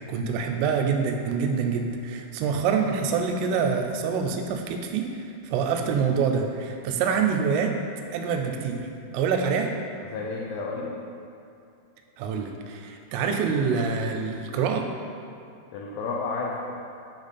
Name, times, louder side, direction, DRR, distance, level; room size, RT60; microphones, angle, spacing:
voice 1, 0.1-7.8 8.1-9.7 12.2-14.9, right 6 dB, 85° right, 4 dB, 3.0 m, -26 dB
voice 2, 10.1-11.0 15.7-16.7, left 3 dB, 85° left, -2 dB, 2.9 m, -31 dB
8.8 x 3.4 x 4.1 m, 2.6 s
omnidirectional pair, 5.7 m